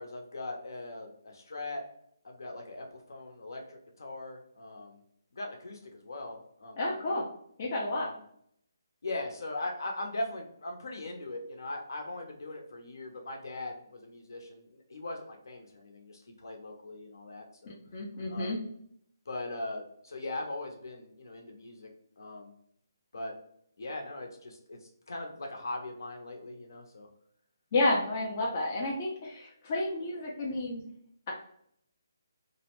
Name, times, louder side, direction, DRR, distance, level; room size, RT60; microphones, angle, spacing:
voice 1, 0.0-1.8 2.2-5.0 5.3-7.2 7.9-8.2 9.0-17.8 18.3-18.6 19.3-21.9 22.2-22.5 23.1-23.3 23.8-24.8 25.1-27.1, left 2 dB, 65° left, 2 dB, 0.7 m, -40 dB
voice 2, 6.8-7.2 7.6-8.1 17.9-18.6 27.7-30.8, left 2 dB, 30° left, -3 dB, 0.5 m, -30 dB
2.6 x 2.0 x 2.9 m, 0.68 s
hypercardioid pair, 170°, 2 cm